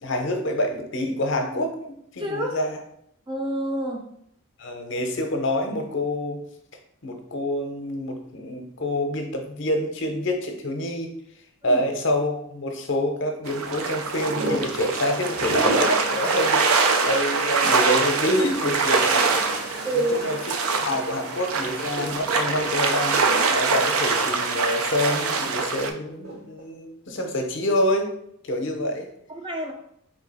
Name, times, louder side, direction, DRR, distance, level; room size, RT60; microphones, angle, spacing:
voice 1, 0.0-2.8 4.6-6.4 7.0-11.1 11.6-19.5 20.1-20.4 20.8-23.2 23.5-28.1 28.4-29.1, left 1 dB, 55° left, 4 dB, 0.6 m, -27 dB
voice 2, 2.2-2.6 3.3-4.1 11.6-11.8 19.8-20.3 29.3-29.7, right 1 dB, 20° right, 2 dB, 0.4 m, -27 dB
sound 1, 13.4-25.9, right 4 dB, 80° right, 0.4 m, -24 dB
sound 2, 14.2-24.9 26.1-26.6, right 1 dB, 45° right, 0.8 m, -33 dB
3.7 x 2.8 x 4.0 m, 0.71 s
head